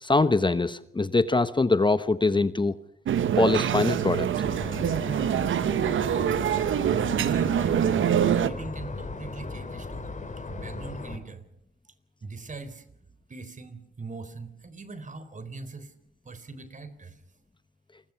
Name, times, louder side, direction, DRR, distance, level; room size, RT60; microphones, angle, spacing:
voice 1, 0.0-2.7 3.4-4.3, left 3 dB, 25° left, 13 dB, 1.1 m, -23 dB
sound 1, 3.1-8.5, right 9 dB, 85° right, 1.2 m, -25 dB
sound 2, 4.4-11.2, left 3 dB, 40° left, 4.9 m, -37 dB
voice 2, 6.4-6.7 7.2-8.1 8.3-10.1 10.5-11.4 12.2-12.8 13.3-15.9 16.2-17.2, right 3 dB, 40° right, 13 dB, 4.0 m, -41 dB
29.0 x 22.0 x 5.9 m, 0.78 s
cardioid pair, 70°, 20 cm